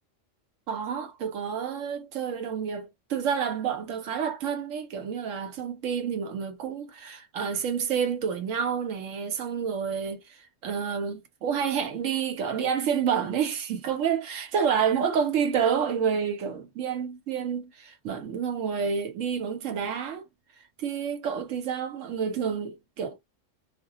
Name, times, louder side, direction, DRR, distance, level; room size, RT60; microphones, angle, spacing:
voice 1, 0.7-10.4 10.6-20.2 20.8-23.2, right 7 dB, 85° right, 1.1 m, -29 dB
2.4 x 2.1 x 2.7 m
omnidirectional pair, 1.3 m